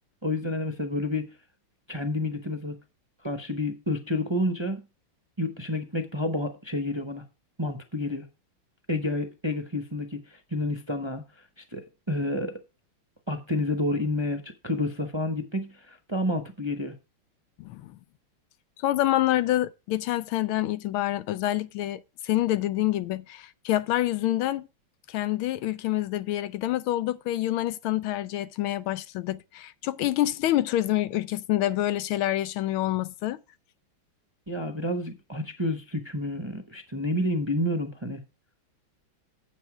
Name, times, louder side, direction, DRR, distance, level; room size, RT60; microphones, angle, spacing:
voice 1, 0.2-1.3 1.9-2.8 3.2-4.8 5.4-7.2 7.6-8.2 8.9-11.2 11.6-12.5 13.3-16.9 34.5-38.2, left 1 dB, 20° right, 0.7 m, -29 dB
voice 2, 17.6-18.0 18.8-24.7 25.1-33.4, left 14 dB, 85° left, 1.5 m, -27 dB
9.0 x 7.8 x 4.9 m
omnidirectional pair, 2.2 m